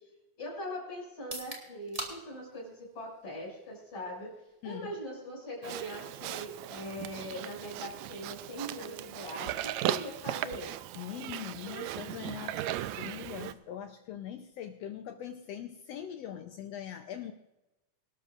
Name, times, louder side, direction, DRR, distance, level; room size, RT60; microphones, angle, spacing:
voice 1, 0.4-4.3 4.6-10.7, equal, 45° left, -3 dB, 7.3 m, -41 dB
sound 1, 1.1-15.0, right 1 dB, 15° right, 1.7 m, -51 dB
Livestock farm animals working animals, 5.6-13.5, right 13 dB, 85° right, 1.6 m, -37 dB
voice 2, 11.0-17.3, left 10 dB, 80° left, 6 dB, 1.5 m, -42 dB
24.5 x 12.5 x 2.5 m, 1.0 s
omnidirectional pair, 3.7 m